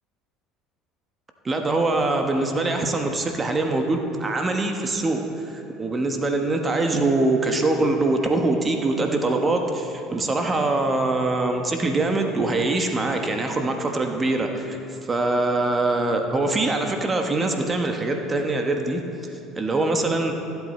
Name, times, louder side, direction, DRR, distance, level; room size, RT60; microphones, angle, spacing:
voice 1, 1.4-5.2 5.8-19.0 19.5-20.3, right 2 dB, 25° right, 4 dB, 1.1 m, -23 dB
14.5 x 8.1 x 4.3 m, 2.7 s
hypercardioid pair, 80°, 0 cm